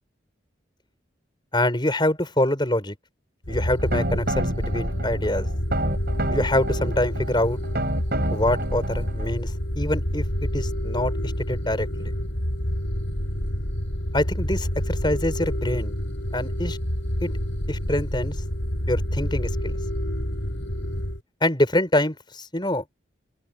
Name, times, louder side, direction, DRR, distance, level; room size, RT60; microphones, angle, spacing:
voice 1, 1.5-3.0 3.5-5.5 6.3-7.6 8.3-12.1 14.1-15.9 16.3-16.8 17.2-17.4 17.7-18.4 18.9-19.8 21.4-22.8, left 1 dB, 25° left, 6.4 m, -25 dB
sound 1, 3.4-21.2, equal, 75° left, 7.7 m, -28 dB
sound 2, 3.5-9.3, right 1 dB, 55° right, 7.1 m, -30 dB
open air
head